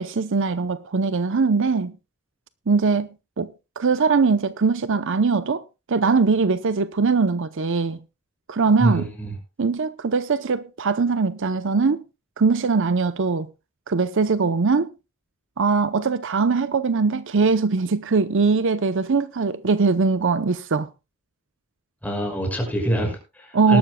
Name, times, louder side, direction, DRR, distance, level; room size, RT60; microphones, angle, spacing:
voice 1, 0.0-2.0 2.7-3.1 3.4-3.5 3.8-5.6 5.9-8.0 8.5-9.1 9.6-12.0 12.4-13.5 13.9-14.9 15.6-20.9 23.5-23.8, right 4 dB, 60° right, 0.7 m, -21 dB
voice 2, 8.8-9.4 22.0-23.8, right 1 dB, 5° left, 5.8 m, -25 dB
19.5 x 12.5 x 2.2 m
head